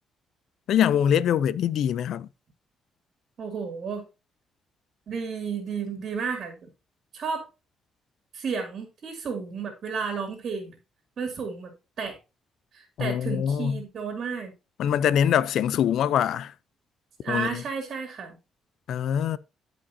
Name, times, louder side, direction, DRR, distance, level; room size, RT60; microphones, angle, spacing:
voice 1, 0.7-2.3 13.0-13.8 14.8-16.5 17.3-17.6 18.9-19.4, left 9 dB, 75° left, 0.5 m, -23 dB
voice 2, 3.4-4.1 5.1-6.6 7.1-7.5 8.3-10.8 11.2-12.2 12.7-14.5 17.2-18.4, right 5 dB, 55° right, 2.4 m, -32 dB
13.5 x 5.2 x 2.8 m
cardioid pair, 90°, 0 cm